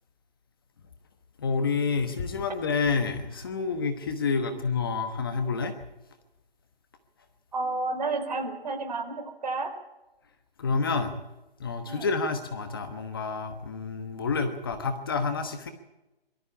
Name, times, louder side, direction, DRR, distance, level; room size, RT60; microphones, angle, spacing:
voice 1, 1.4-5.7 10.6-11.2 11.6-15.7, left 4 dB, 25° left, 6 dB, 1.2 m, -28 dB
voice 2, 7.5-9.7 11.9-12.1, right 3 dB, 45° right, 5 dB, 4.2 m, -31 dB
23.0 x 13.5 x 9.7 m, 0.99 s
hypercardioid pair, 170°, 30 cm